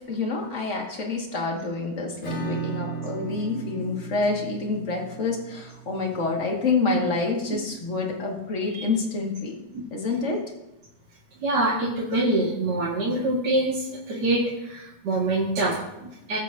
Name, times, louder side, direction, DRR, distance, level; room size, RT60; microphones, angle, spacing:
voice 1, 0.0-9.6 9.9-10.4, left 3 dB, 40° left, 0 dB, 2.1 m, -27 dB
Acoustic guitar / Strum, 2.2-7.7, right 5 dB, 70° left, 4.5 m, -37 dB
voice 2, 11.4-16.4, right 2 dB, 65° right, -5 dB, 2.4 m, -25 dB
20.5 x 8.1 x 2.7 m, 0.91 s
omnidirectional pair, 2.0 m